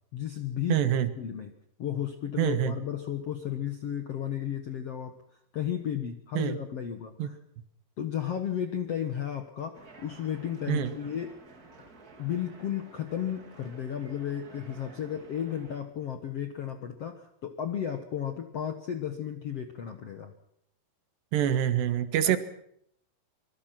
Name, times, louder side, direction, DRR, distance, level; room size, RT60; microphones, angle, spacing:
voice 1, 0.1-0.8 1.2-1.5 1.8-5.2 5.5-7.4 8.0-11.3 12.2-20.3 22.2-22.4, left 9 dB, 65° left, 7 dB, 1.5 m, -33 dB
voice 2, 0.7-1.1 2.4-2.8 6.4-6.6 7.2-7.3 10.7-11.0 21.3-22.4, right 10 dB, 80° right, 11 dB, 3.5 m, -26 dB
sound 1, 9.7-15.8, right 3 dB, 30° right, 2.0 m, -52 dB
25.5 x 22.0 x 6.0 m, 0.70 s
omnidirectional pair, 4.8 m